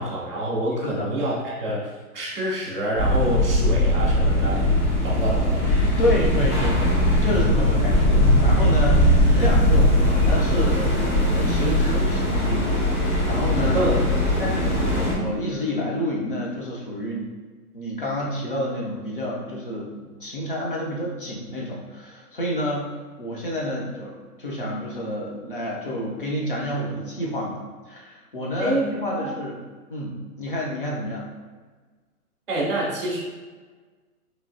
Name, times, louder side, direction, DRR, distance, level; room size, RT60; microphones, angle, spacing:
voice 1, 0.0-4.7 5.0-5.6 13.7-14.0 28.6-28.9 29.2-29.3 32.5-33.2, right 1 dB, 40° right, -6 dB, 0.4 m, -27 dB
sound 1, 3.0-15.1, left 1 dB, 75° left, 1.5 m, -20 dB
voice 2, 6.0-13.9 14.4-17.3 17.7-27.6 27.9-29.6 29.9-31.3, equal, 35° left, -3 dB, 0.5 m, -29 dB
3.1 x 2.7 x 2.5 m, 1.4 s
hypercardioid pair, 165°, 46 cm